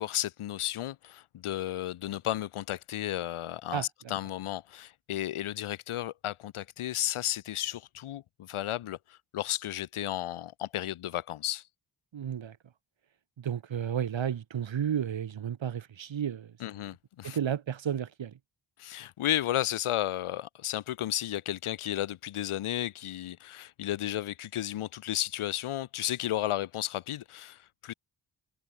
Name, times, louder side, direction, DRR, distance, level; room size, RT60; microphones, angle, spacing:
voice 1, 0.0-11.6 16.6-17.4 18.8-27.9, left 13 dB, 90° left, 0.6 m, -33 dB
voice 2, 3.7-4.1 12.1-12.6 13.4-16.5 17.2-18.4, right 9 dB, 65° right, 1.1 m, -32 dB
wide cardioid pair, 75°, 48 cm